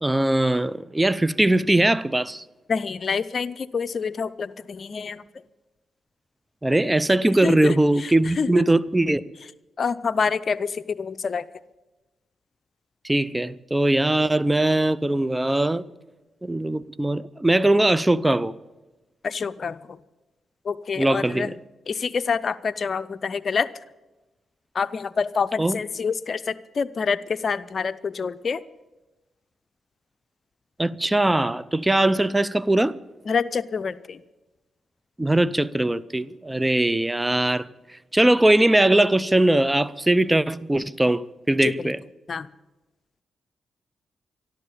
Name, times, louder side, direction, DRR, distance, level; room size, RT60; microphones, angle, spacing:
voice 1, 0.0-2.4 6.6-9.2 13.0-15.8 16.4-18.5 21.0-21.5 25.6-25.8 30.8-33.0 35.2-37.7 38.1-41.2 41.5-42.0, right 1 dB, 15° right, 0.6 m, -20 dB
voice 2, 2.7-5.2 7.4-8.6 9.8-11.5 19.2-20.0 20.6-21.6 21.9-23.7 24.7-28.6 33.3-34.2 41.6-41.9 42.3-42.5, left 5 dB, 55° left, 0.6 m, -27 dB
13.0 x 12.0 x 8.5 m
supercardioid pair, 55°, 0 cm